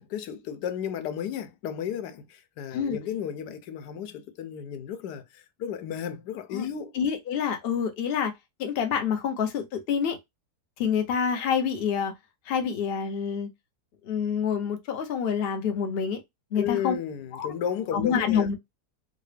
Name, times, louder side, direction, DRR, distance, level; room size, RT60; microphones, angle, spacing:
voice 1, 0.0-6.9 16.6-18.5, left 9 dB, 90° left, 1.2 m, -33 dB
voice 2, 6.9-8.3 8.6-10.2 10.8-12.1 12.5-13.5 14.0-16.2 16.5-16.9 17.3-17.5 17.9-18.5, left 7 dB, 50° left, 0.8 m, -27 dB
3.8 x 2.1 x 3.2 m
omnidirectional pair, 1.7 m